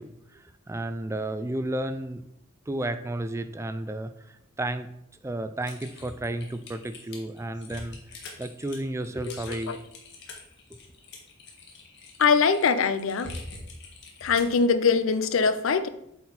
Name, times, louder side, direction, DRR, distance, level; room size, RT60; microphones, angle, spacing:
voice 1, 0.0-2.2 2.7-4.9 5.2-8.0 8.4-9.8, right 1 dB, 15° right, 0.3 m, -32 dB
Typing, 5.6-14.6, left 3 dB, 50° left, 1.5 m, -44 dB
voice 2, 12.2-13.3 14.2-15.9, left 5 dB, 70° left, 0.5 m, -22 dB
8.2 x 4.3 x 4.1 m
head